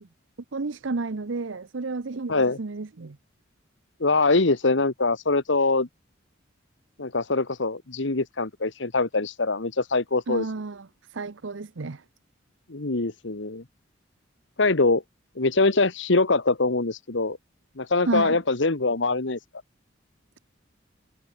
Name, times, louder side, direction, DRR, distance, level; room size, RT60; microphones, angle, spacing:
voice 1, 0.5-3.2 10.3-12.0 18.1-18.4, right 3 dB, 80° right, 0.8 m, -31 dB
voice 2, 4.0-5.9 7.0-10.4 12.7-13.6 14.6-15.0 15.4-17.4 17.8-19.4, left 3 dB, 70° left, 1.4 m, -23 dB
head